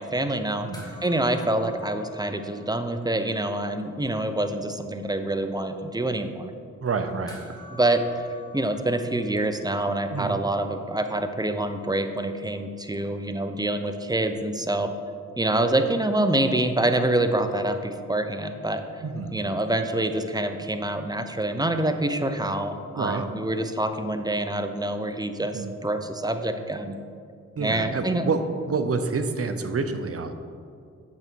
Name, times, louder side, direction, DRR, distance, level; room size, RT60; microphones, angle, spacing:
voice 1, 0.0-0.7 1.0-6.5 7.7-8.2 8.5-14.9 15.4-18.8 19.3-26.9 27.6-28.3, right 1 dB, 10° right, 7 dB, 0.8 m, -26 dB
sound 1, 0.7-3.4 3.6-3.7 7.3-9.9 12.0-12.1, left 3 dB, 10° left, 2.3 m, -48 dB
voice 2, 6.8-7.4 10.1-10.4 19.0-19.4 23.0-23.2 25.5-25.7 27.6-30.3, right 4 dB, 45° right, 8 dB, 0.8 m, -28 dB
8.4 x 6.6 x 4.7 m, 2.4 s
cardioid pair, 50°, 31 cm